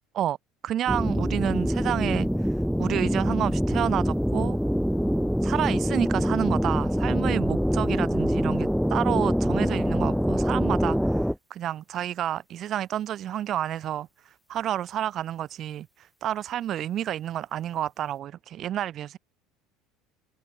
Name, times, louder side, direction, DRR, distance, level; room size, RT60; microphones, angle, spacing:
voice 1, 0.6-2.5 2.8-4.6 5.4-11.3 11.5-19.2, right 11 dB, 50° right, 5.4 m, -30 dB
sound 1, 0.9-11.3, equal, ahead, 2.0 m, -25 dB
open air
hypercardioid pair, 80°, 0 cm